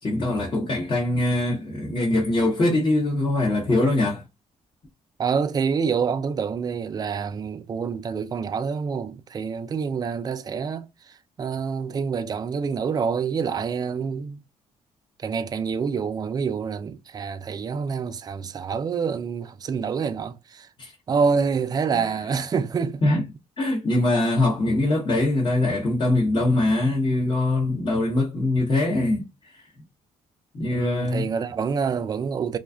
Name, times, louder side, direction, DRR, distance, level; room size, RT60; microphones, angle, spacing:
voice 1, 0.0-4.2 20.8-20.9 21.9-22.0 23.0-23.2 23.6-29.7 30.5-31.3, left 2 dB, 40° left, 0.9 m, -23 dB
voice 2, 5.2-14.4 15.2-20.7 21.1-23.0 30.7-32.6, right 6 dB, 30° right, 0.4 m, -27 dB
2.4 x 2.3 x 2.2 m
cardioid pair, 100°, 13 cm